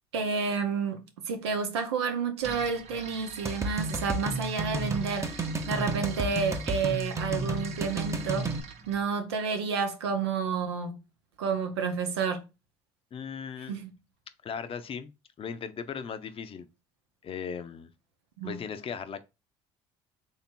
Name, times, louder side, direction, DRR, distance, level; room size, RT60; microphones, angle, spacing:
voice 1, 0.1-5.4 5.7-8.6 8.9-11.0 11.4-12.4 13.7-13.9 18.4-18.6, right 5 dB, 90° right, 0.7 m, -30 dB
sound 1, 2.4-9.0, right 6 dB, 55° right, 0.9 m, -45 dB
sound 2, 3.4-8.6, right 2 dB, 20° right, 0.7 m, -32 dB
voice 2, 13.1-13.8 14.4-15.1 15.4-16.7 17.2-17.9 18.4-19.2, left 7 dB, 45° left, 0.7 m, -37 dB
3.3 x 2.7 x 4.4 m
hypercardioid pair, 65°, 14 cm